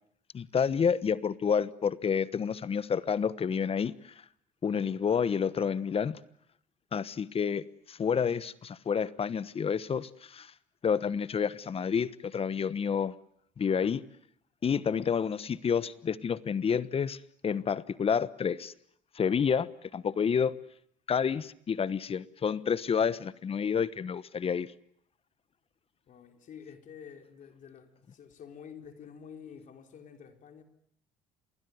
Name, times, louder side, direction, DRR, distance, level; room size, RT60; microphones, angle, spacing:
voice 1, 0.3-4.1 4.6-6.2 6.9-10.5 10.8-13.1 13.6-14.0 14.6-17.2 17.4-18.7 19.1-20.5 21.1-24.7, left 7 dB, 40° left, 1.2 m, -29 dB
voice 2, 26.1-30.6, left 7 dB, 55° left, 4.1 m, -49 dB
27.5 x 20.5 x 9.4 m
supercardioid pair, 80°, 16 cm